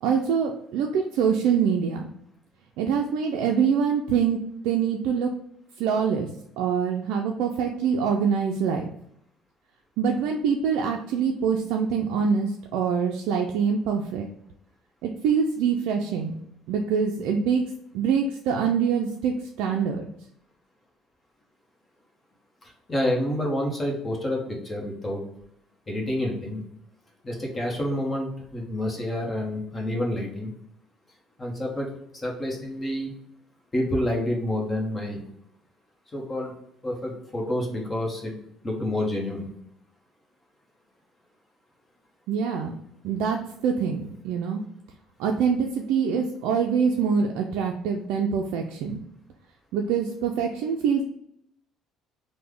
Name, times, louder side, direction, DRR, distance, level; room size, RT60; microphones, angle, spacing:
voice 1, 0.0-2.1 2.8-4.4 4.6-5.3 5.8-6.3 6.6-8.9 10.0-14.3 15.0-16.4 16.7-17.6 17.9-20.1 42.3-42.7 43.0-44.6 45.2-49.0 49.7-51.0, right 6 dB, 80° right, 1 dB, 0.3 m, -24 dB
voice 2, 22.6-25.2 25.9-26.6 27.2-30.5 31.4-31.9 32.1-33.1 33.7-35.2 36.1-36.5 36.8-38.3 38.6-39.5, left 1 dB, 25° left, -1 dB, 1.0 m, -28 dB
3.2 x 2.1 x 3.6 m, 0.74 s
cardioid pair, 100°, 0 cm